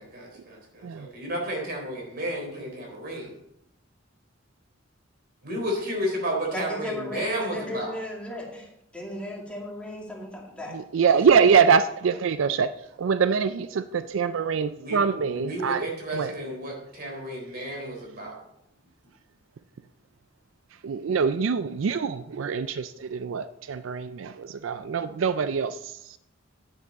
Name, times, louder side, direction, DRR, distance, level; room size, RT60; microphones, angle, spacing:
voice 1, 0.0-3.3 5.4-7.9 14.7-18.4, equal, 55° right, 3.6 m, -32 dB
voice 2, 6.5-10.7 11.1-11.4, left 1 dB, 5° left, 2.3 m, -36 dB
voice 3, 10.7-12.7 13.0-15.9 16.1-16.3 20.8-26.2, right 6 dB, 85° right, 0.4 m, -24 dB
9.9 x 9.6 x 4.1 m
head